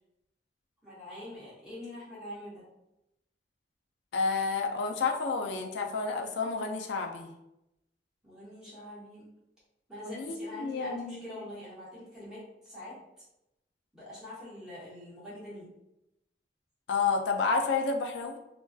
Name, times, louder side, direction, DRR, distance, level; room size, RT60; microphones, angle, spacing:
voice 1, 0.8-2.6 8.2-9.3 9.9-13.0 13.9-15.7, left 1 dB, 5° right, -10 dB, 1.0 m, -44 dB
voice 2, 4.1-7.3 10.0-11.4 16.9-18.4, left 4 dB, 85° left, 3 dB, 0.4 m, -30 dB
2.5 x 2.2 x 2.3 m, 0.89 s
head